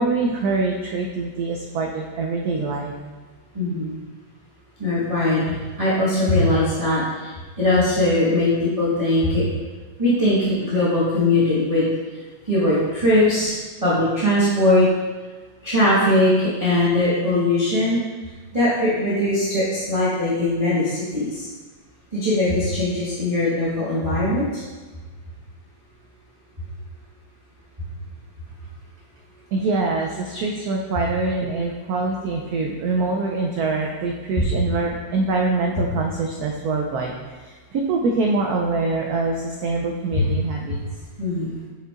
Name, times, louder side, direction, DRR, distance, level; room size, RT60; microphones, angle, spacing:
voice 1, 0.0-2.9 29.5-40.8, right 3 dB, 85° right, 0 dB, 0.8 m, -24 dB
voice 2, 3.5-3.9 4.8-9.4 10.0-11.9 12.4-13.5 13.8-14.9 15.6-18.0 18.5-21.5 22.1-24.6 34.4-34.5 40.1-40.2 41.2-41.7, left 1 dB, 20° right, -11 dB, 1.2 m, -20 dB
7.8 x 5.5 x 2.4 m, 1.3 s
omnidirectional pair, 2.2 m